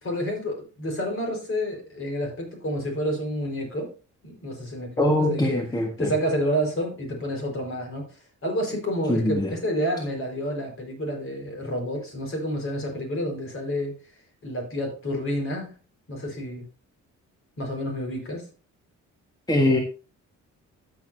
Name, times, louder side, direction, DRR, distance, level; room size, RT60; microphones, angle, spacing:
voice 1, 0.0-3.9 4.2-5.6 6.0-13.9 14.4-15.7 16.1-16.6 17.6-18.5, equal, 45° left, 1 dB, 4.6 m, -29 dB
voice 2, 5.0-6.1 9.1-9.5 19.5-19.8, left 1 dB, 15° left, 1 dB, 1.6 m, -22 dB
13.5 x 6.5 x 2.7 m, 0.33 s
cardioid pair, 90°, 30 cm